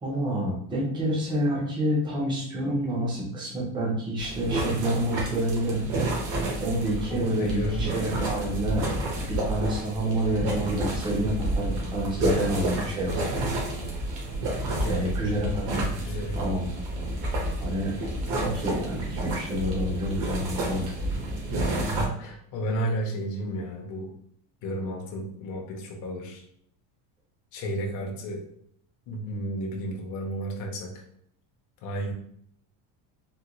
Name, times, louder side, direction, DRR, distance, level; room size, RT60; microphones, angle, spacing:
voice 1, 0.0-5.8 6.6-8.9 9.2-13.5 14.9-15.9 16.3-16.7 17.6-17.9 18.4-20.9, right 1 dB, 10° right, -3 dB, 0.4 m, -28 dB
sound 1, 4.2-22.1, right 1 dB, 75° right, 1.3 m, -30 dB
voice 2, 6.8-7.9 14.8-15.1 16.0-16.4 21.8-24.1 24.6-26.4 27.5-28.4 29.1-31.0 31.8-32.1, right 1 dB, 40° left, 0 dB, 0.6 m, -32 dB
3.7 x 2.2 x 2.9 m, 0.68 s
cardioid pair, 170°, 48 cm